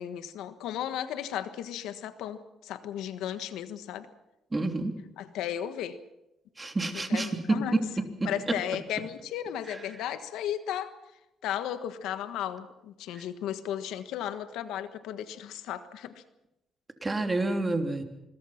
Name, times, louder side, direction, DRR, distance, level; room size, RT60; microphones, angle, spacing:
voice 1, 0.0-4.1 5.2-6.0 6.9-7.8 8.2-10.9 11.4-16.2, left 10 dB, 90° left, 11 dB, 1.4 m, -35 dB
voice 2, 4.5-4.9 6.6-7.8 8.2-8.3 13.1-13.2 17.0-18.0, right 2 dB, 20° right, 5 dB, 3.2 m, -28 dB
25.5 x 22.5 x 5.9 m, 0.92 s
cardioid pair, 90°, 0 cm